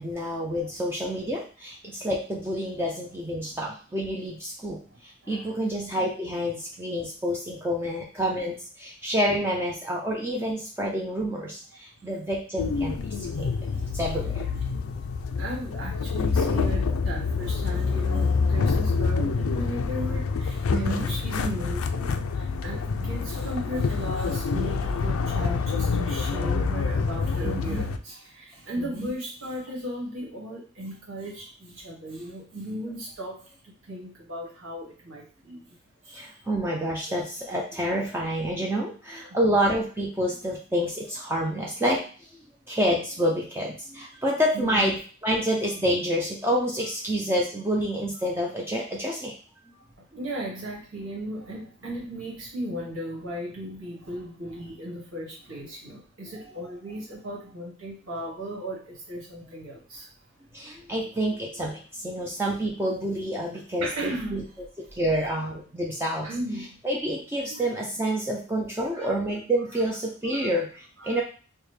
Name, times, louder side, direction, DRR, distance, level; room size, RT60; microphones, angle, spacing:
voice 1, 0.0-13.0 13.4-13.5 13.9-14.5 20.7-21.1 22.9-23.1 25.4-25.5 26.4-26.7 27.4-27.8 28.8-29.1 36.1-42.1 42.7-45.0 45.2-49.3 60.5-64.4 64.9-66.3 66.8-71.2, equal, 10° right, -2 dB, 0.4 m, -28 dB
voice 2, 5.2-5.9 13.4-14.2 14.9-15.0 15.4-33.5 33.9-35.6 36.0-36.3 44.5-44.9 50.1-60.1 63.8-64.5 66.2-66.7 67.5-67.7 68.9-69.1 69.8-69.9 70.3-70.5 71.0-71.2, right 1 dB, 75° right, -4 dB, 1.3 m, -36 dB
sound 1, 12.6-28.0, left 4 dB, 85° left, 0.4 m, -27 dB
4.7 x 2.1 x 3.2 m, 0.39 s
head